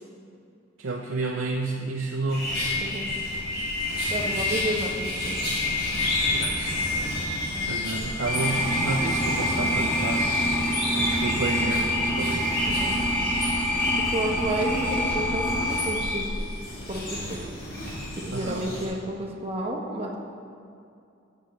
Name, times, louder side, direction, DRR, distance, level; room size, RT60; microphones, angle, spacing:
voice 1, 0.8-2.5 6.1-6.8 7.6-10.3 10.9-12.7 18.3-18.7, right 3 dB, 75° right, 0 dB, 0.6 m, -31 dB
sound 1, 2.3-18.9, left 2 dB, 50° left, 2.1 m, -29 dB
voice 2, 4.1-5.4 9.5-9.7 12.7-12.9 14.1-16.5 16.9-17.4 18.2-20.2, right 1 dB, 30° right, -1 dB, 1.1 m, -31 dB
sound 2, 8.3-16.1, equal, 20° left, 1.6 m, -27 dB
13.0 x 8.3 x 3.2 m, 2.5 s
head